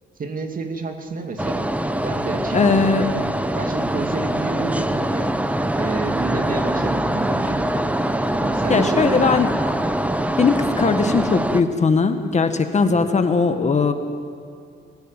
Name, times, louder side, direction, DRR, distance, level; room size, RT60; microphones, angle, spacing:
voice 1, 0.2-1.7 2.0-3.2 3.5-5.3 5.7-7.9 8.4-9.4 12.9-13.1, right 3 dB, 45° right, 5 dB, 2.5 m, -30 dB
sound 1, 1.4-11.6, right 1 dB, 5° right, 1.0 m, -23 dB
voice 2, 2.5-3.0 8.7-9.5 10.4-13.9, left 4 dB, 35° left, 8 dB, 1.5 m, -19 dB
23.5 x 15.0 x 9.1 m, 2.3 s
cardioid pair, 90°, 20 cm